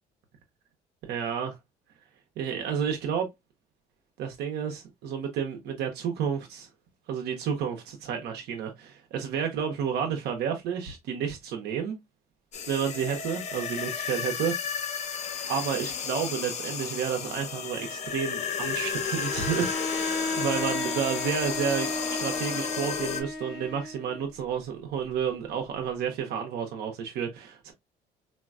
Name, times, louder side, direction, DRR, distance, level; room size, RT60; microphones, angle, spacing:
voice 1, 1.0-1.6 2.4-3.3 4.2-6.7 7.1-12.0 12.7-14.5 15.5-27.7, right 7 dB, 80° right, 0.6 m, -31 dB
sound 1, 12.5-23.2, left 6 dB, 40° left, 0.6 m, -33 dB
Bowed string instrument, 19.2-24.2, left 2 dB, ahead, 1.7 m, -34 dB
4.0 x 2.1 x 2.3 m
cardioid pair, 110°, 17 cm